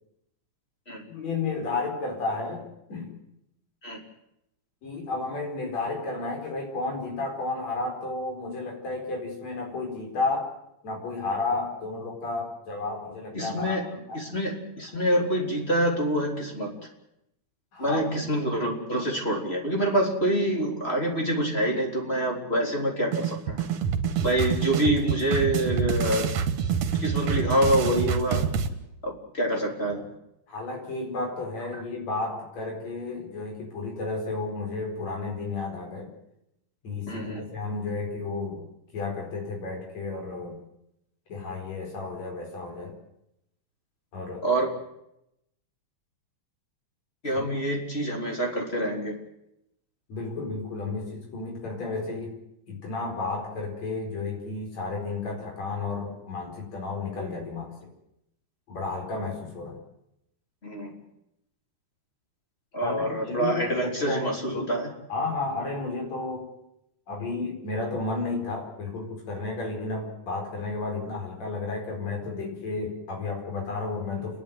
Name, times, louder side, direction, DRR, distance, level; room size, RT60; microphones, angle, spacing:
voice 1, 1.1-2.6 2.9-3.1 4.8-10.5 10.8-13.8 14.1-14.2 17.7-18.0 30.5-36.1 36.8-38.7 38.9-40.6 41.3-42.9 44.1-44.5 50.1-52.3 52.7-57.7 58.7-59.8 62.8-64.6 65.1-66.5 67.1-74.4, left 3 dB, 60° left, 1 dB, 6.1 m, -32 dB
voice 2, 13.3-13.8 14.1-16.7 17.8-23.6 24.2-26.3 27.0-28.4 29.0-30.1 31.7-31.8 37.1-37.4 44.4-44.7 47.2-49.1 60.6-60.9 62.7-64.9, right 1 dB, 20° left, 0 dB, 3.9 m, -26 dB
sound 1, 23.1-28.7, right 7 dB, 65° right, 2.6 m, -27 dB
30.0 x 11.0 x 9.6 m, 0.82 s
omnidirectional pair, 3.4 m